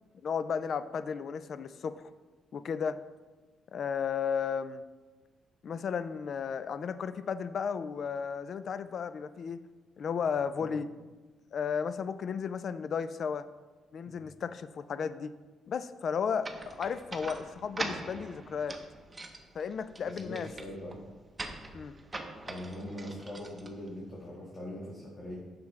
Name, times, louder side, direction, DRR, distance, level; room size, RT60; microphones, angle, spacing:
voice 1, 0.1-1.9 2.5-3.0 3.7-4.8 5.6-9.6 10.0-10.9 11.5-13.5 13.9-15.3 15.7-18.8 19.5-20.5 21.7-22.0, left 6 dB, 55° left, 13 dB, 0.4 m, -34 dB
sound 1, 16.4-24.3, right 2 dB, 20° right, 0.8 m, -43 dB
voice 2, 20.0-21.0 22.4-25.3, left 1 dB, 40° left, -6 dB, 1.6 m, -42 dB
8.1 x 6.0 x 3.2 m, 1.3 s
cardioid pair, 90°, 0 cm